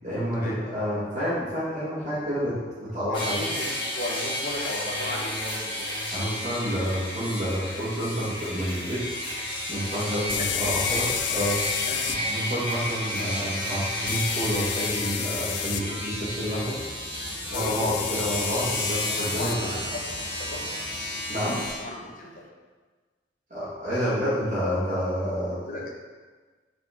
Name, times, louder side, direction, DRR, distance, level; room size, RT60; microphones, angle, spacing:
voice 1, 0.0-3.4 6.1-9.0 9.7-11.6 12.1-16.8 17.5-19.5 21.3-21.6 23.5-25.8, equal, 40° right, -11 dB, 2.3 m, -29 dB
sound 1, 1.9-21.2, equal, 80° right, 1.9 m, -48 dB
voice 2, 3.1-3.7 4.0-5.9 10.4-10.5 11.8-12.0 17.5-17.9 19.0-19.8 20.2-20.6 21.8-22.3 25.4-25.9, left 1 dB, 50° left, -2 dB, 1.3 m, -36 dB
sound 2, 3.1-21.7, left 1 dB, 30° left, 1.9 m, -32 dB
jato de ar compressor, 6.8-6.9 10.3-12.2 14.1-15.8 17.5-19.6, left 13 dB, 70° left, 0.3 m, -31 dB
6.2 x 4.8 x 5.1 m, 1.4 s
head